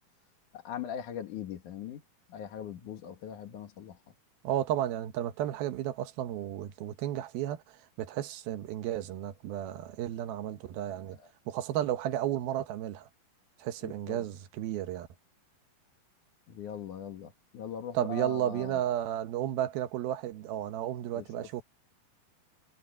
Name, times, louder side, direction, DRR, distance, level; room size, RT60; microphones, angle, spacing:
voice 1, 0.5-2.0 2.3-4.0 11.2-11.3 13.8-14.2 16.5-18.8 21.1-21.2, left 8 dB, 60° left, 3.0 m, -40 dB
voice 2, 4.4-11.2 11.5-13.1 13.6-15.1 17.9-21.6, right 12 dB, 80° right, 3.0 m, -33 dB
omnidirectional pair, 4.3 m